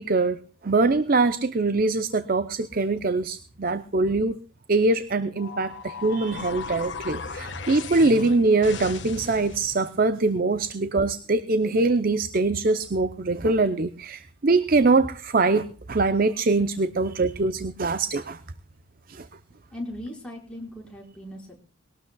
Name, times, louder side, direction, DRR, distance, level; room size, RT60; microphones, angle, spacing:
voice 1, 0.0-4.4 4.7-18.4 19.1-19.3, right 3 dB, 45° right, 12 dB, 0.7 m, -23 dB
sound 1, 5.4-9.9, left 4 dB, 65° left, 1.5 m, -37 dB
voice 2, 19.7-21.6, left 1 dB, 5° left, -3 dB, 5.1 m, -38 dB
21.0 x 18.0 x 2.3 m, 0.37 s
head